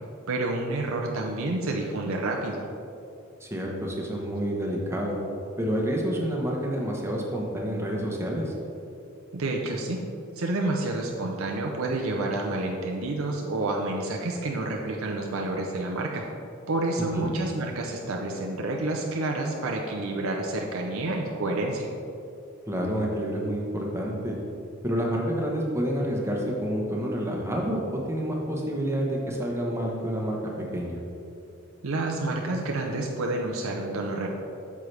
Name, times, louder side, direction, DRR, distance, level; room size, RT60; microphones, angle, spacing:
voice 1, 0.3-2.6 9.3-10.0 10.3-16.2 16.7-21.9 31.8-34.3, right 2 dB, 75° right, 0 dB, 0.7 m, -29 dB
voice 2, 3.4-5.2 5.6-8.5 17.1-17.3 22.7-24.4 24.8-30.4 30.7-31.0, equal, 15° right, -1 dB, 1.0 m, -28 dB
8.4 x 6.6 x 3.3 m, 2.6 s
head